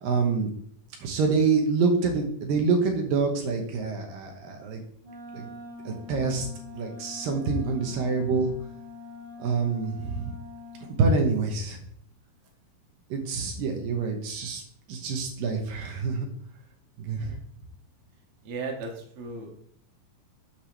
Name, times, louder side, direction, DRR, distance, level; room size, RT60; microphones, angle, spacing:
voice 1, 0.0-0.5 1.0-4.8 5.3-5.5 5.9-6.5 6.7-8.5 9.4-10.3 11.0-11.8 13.1-14.6 14.9-16.3 17.0-17.3, right 4 dB, 75° right, 3 dB, 2.7 m, -26 dB
Wind instrument woodwind instrument, 5.0-11.0, left 3 dB, 30° right, 1.7 m, -44 dB
voice 2, 17.1-17.4 18.4-19.6, right 3 dB, 50° right, 0 dB, 2.0 m, -37 dB
8.7 x 3.4 x 6.4 m, 0.63 s
omnidirectional pair, 4.2 m